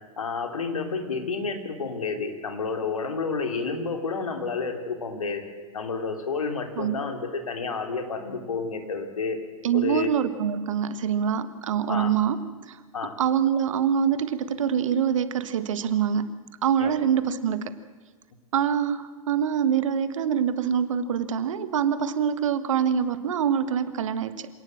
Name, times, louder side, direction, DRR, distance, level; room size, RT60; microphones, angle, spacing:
voice 1, 0.2-5.4 5.7-9.4 9.7-10.1 11.9-12.1 12.9-13.2 16.8-16.9, left 4 dB, 75° left, 5 dB, 3.1 m, -30 dB
voice 2, 9.6-12.4 12.7-12.8 13.2-16.3 16.6-17.7 18.5-24.5, right 8 dB, 65° right, 12 dB, 1.5 m, -25 dB
26.5 x 18.0 x 7.6 m, 1.3 s
figure-of-eight pair, 95°, 18 cm